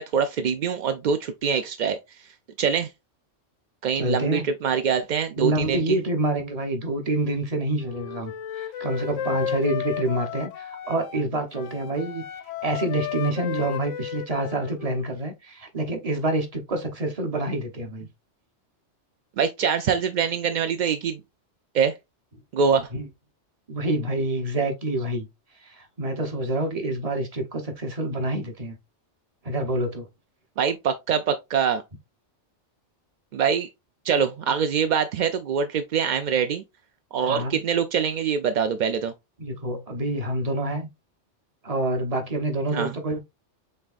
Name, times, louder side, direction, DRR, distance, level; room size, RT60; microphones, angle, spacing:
voice 1, 0.0-2.0 2.6-2.9 3.8-6.0 19.4-21.2 21.7-21.9 22.5-22.9 30.6-31.8 33.3-33.7 34.0-36.6 37.1-39.1 42.7-42.9, right 7 dB, 60° right, 0.4 m, -24 dB
voice 2, 3.9-4.4 5.4-12.2 12.6-18.1 22.9-23.1 23.7-25.3 25.6-28.8 29.4-30.1 37.3-37.6 39.4-40.9 41.6-43.2, right 1 dB, 35° right, 0.9 m, -27 dB
Wind instrument woodwind instrument, 7.8-11.3 11.5-15.1, left 10 dB, 90° left, 0.9 m, -33 dB
5.5 x 3.5 x 2.4 m
omnidirectional pair, 1.2 m